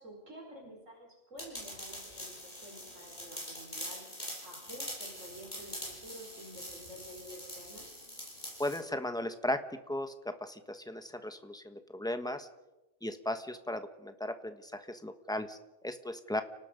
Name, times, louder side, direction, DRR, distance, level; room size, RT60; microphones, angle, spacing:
voice 1, 0.0-4.0 4.4-7.8, equal, 85° right, 0 dB, 5.7 m, -50 dB
sound 1, 1.4-8.8, equal, 35° left, 7.6 m, -44 dB
voice 2, 8.6-9.6 9.9-12.5 13.0-16.4, left 1 dB, 5° left, 8 dB, 1.3 m, -36 dB
30.0 x 18.5 x 5.3 m, 1.0 s
omnidirectional pair, 1.3 m